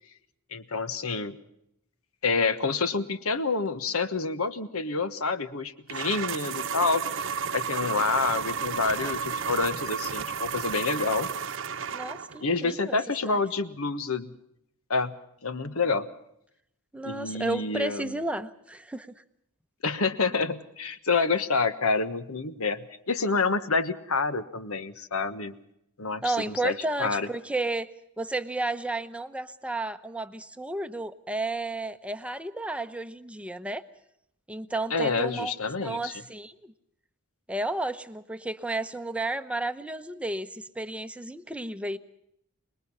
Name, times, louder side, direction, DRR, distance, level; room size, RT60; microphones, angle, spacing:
voice 1, 0.5-1.4 2.2-7.0 7.5-11.3 12.4-14.3 14.9-15.2 15.4-16.1 17.0-18.1 19.8-25.5 26.0-27.3 34.9-36.1, left 4 dB, 75° left, 12 dB, 1.4 m, -28 dB
sound 1, 5.9-12.4, right 6 dB, 60° right, 1.0 m, -32 dB
voice 2, 11.9-13.0 13.2-13.4 16.9-19.1 26.2-33.8 34.5-35.5 35.8-36.7 37.5-42.0, right 2 dB, 5° right, 9 dB, 0.8 m, -32 dB
25.0 x 21.0 x 5.6 m, 0.77 s
head